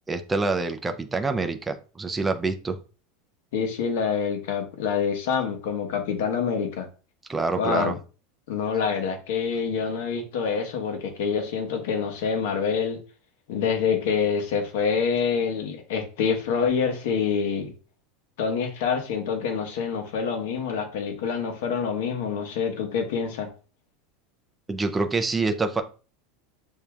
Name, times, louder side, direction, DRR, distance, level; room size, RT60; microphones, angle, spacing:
voice 1, 0.1-2.8 7.3-8.0 24.7-25.8, right 3 dB, 10° right, 0.4 m, -26 dB
voice 2, 3.5-6.9 7.6-7.9 8.5-13.0 13.5-17.7 18.4-23.5, left 6 dB, 65° left, 1.1 m, -26 dB
6.6 x 2.7 x 2.3 m
supercardioid pair, 170°, 0 cm